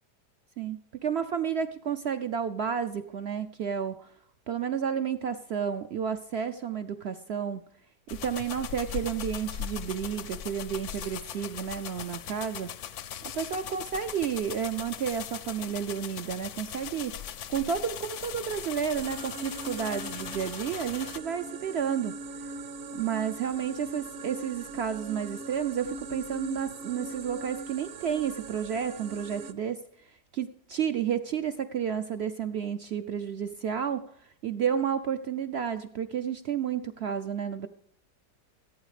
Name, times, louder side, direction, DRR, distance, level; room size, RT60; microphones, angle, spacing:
voice 1, 0.6-4.1 4.5-7.7 8.1-12.7 13.2-17.2 17.5-22.2 22.9-29.8 30.3-37.7, right 8 dB, 75° right, 10 dB, 0.5 m, -31 dB
sound 1, 8.1-21.2, left 9 dB, 65° left, 0.8 m, -39 dB
sound 2, 18.9-29.5, right 3 dB, 60° right, 1.0 m, -41 dB
15.5 x 9.0 x 4.9 m, 0.64 s
omnidirectional pair, 1.8 m